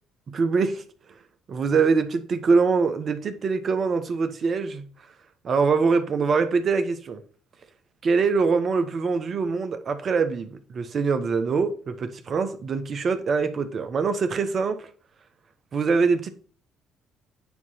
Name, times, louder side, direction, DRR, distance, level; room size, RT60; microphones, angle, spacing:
voice 1, 0.3-0.8 1.5-4.9 5.4-7.2 8.0-14.9 15.7-16.3, right 4 dB, 50° right, 1.0 m, -23 dB
9.4 x 3.1 x 5.6 m
hypercardioid pair, 55°, 0 cm